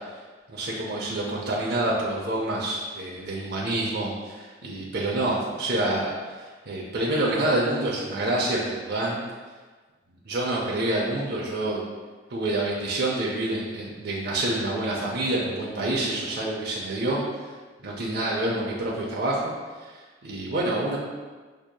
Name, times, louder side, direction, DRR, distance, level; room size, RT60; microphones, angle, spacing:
voice 1, 0.5-6.1 6.7-9.2 10.3-11.8 12.3-17.4 17.8-19.4 19.8-19.9 20.2-21.0, right 1 dB, 60° right, -4 dB, 0.6 m, -27 dB
6.1 x 2.7 x 2.2 m, 1.4 s
head